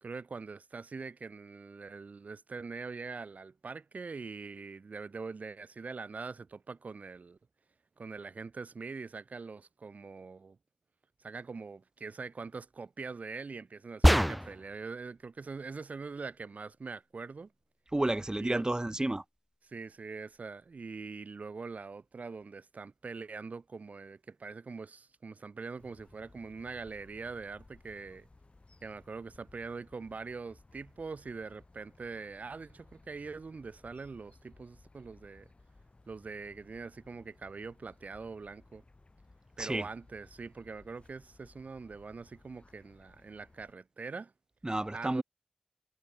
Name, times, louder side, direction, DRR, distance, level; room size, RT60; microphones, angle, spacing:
voice 1, 0.0-7.4 8.0-10.6 11.2-17.5 18.4-18.6 19.6-28.3 28.8-35.5 36.1-38.8 39.6-44.3 44.9-45.2, right 4 dB, 75° right, 1.0 m, -43 dB
sound 1, 14.0-14.8, equal, ahead, 0.4 m, -23 dB
voice 2, 17.9-19.2 39.6-39.9 44.6-45.2, right 1 dB, 30° right, 1.6 m, -31 dB
sound 2, 25.8-43.7, left 2 dB, 50° left, 6.9 m, -60 dB
cardioid pair, 40°, 3 cm